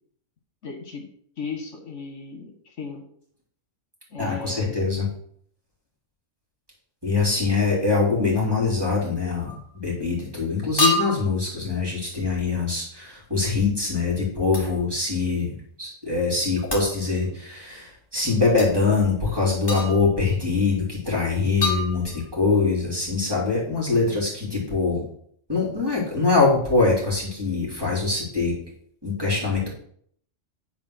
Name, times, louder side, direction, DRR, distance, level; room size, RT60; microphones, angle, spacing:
voice 1, 0.6-1.1 1.4-3.0 4.1-4.9, left 5 dB, 70° left, 4 dB, 1.5 m, -36 dB
voice 2, 4.2-5.1 7.0-15.5 15.8-25.0 25.5-28.5 29.0-29.7, left 4 dB, 20° right, -5 dB, 3.2 m, -23 dB
sound 1, 9.4-9.7 10.8-11.4 14.5-14.8 16.7-17.0 18.6-18.7 19.7-20.2 21.6-22.4, left 1 dB, 20° left, 2.1 m, -27 dB
9.2 x 4.4 x 6.2 m, 0.64 s
omnidirectional pair, 1.3 m